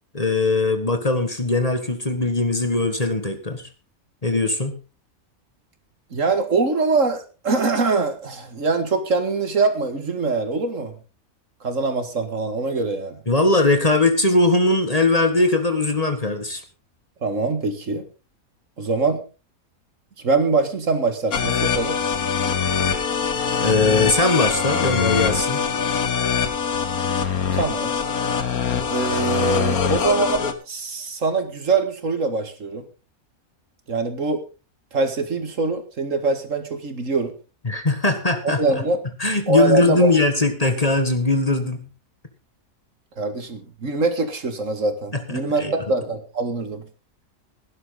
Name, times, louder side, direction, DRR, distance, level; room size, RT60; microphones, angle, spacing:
voice 1, 0.1-3.7 4.2-4.7 13.3-16.6 23.6-25.6 37.6-38.8 39.2-41.9 45.1-45.8, left 2 dB, 25° left, 7 dB, 1.7 m, -20 dB
voice 2, 6.1-10.9 11.6-13.2 17.2-18.0 18.8-19.2 20.2-22.0 27.5-27.9 28.9-32.8 33.9-34.4 34.9-37.3 38.4-39.0 39.5-40.1 43.2-46.8, right 3 dB, 65° right, 8 dB, 2.3 m, -23 dB
sound 1, 21.3-30.5, left 6 dB, 90° left, 1.9 m, -23 dB
17.0 x 11.5 x 3.9 m, 0.32 s
omnidirectional pair, 1.5 m